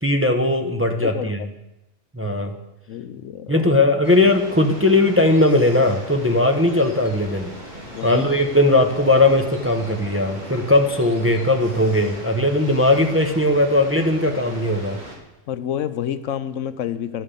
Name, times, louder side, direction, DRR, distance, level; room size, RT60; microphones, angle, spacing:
voice 1, 0.0-1.4 2.1-2.5 3.5-7.5 8.0-15.0, left 2 dB, 15° right, 4 dB, 0.7 m, -18 dB
voice 2, 1.0-1.3 2.9-3.8 7.9-8.3 15.5-17.2, left 9 dB, 75° left, 12 dB, 1.0 m, -28 dB
sound 1, 4.0-15.2, equal, 35° right, 2.8 m, -38 dB
12.0 x 9.1 x 6.8 m, 0.94 s
omnidirectional pair, 1.3 m